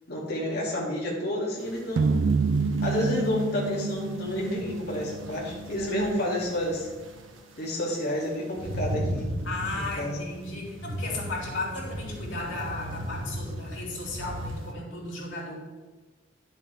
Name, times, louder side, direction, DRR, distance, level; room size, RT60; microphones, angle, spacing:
voice 1, 0.1-2.2 2.8-6.9 7.6-9.3 9.8-10.3, left 1 dB, 55° left, -5 dB, 2.6 m, -30 dB
sound 1, 1.6-14.7, equal, 85° right, 1.1 m, -37 dB
sound 2, 2.0-6.3, right 4 dB, 65° right, 0.4 m, -28 dB
voice 2, 9.4-15.5, left 2 dB, 90° left, -4 dB, 3.2 m, -35 dB
10.5 x 7.1 x 3.5 m, 1.3 s
head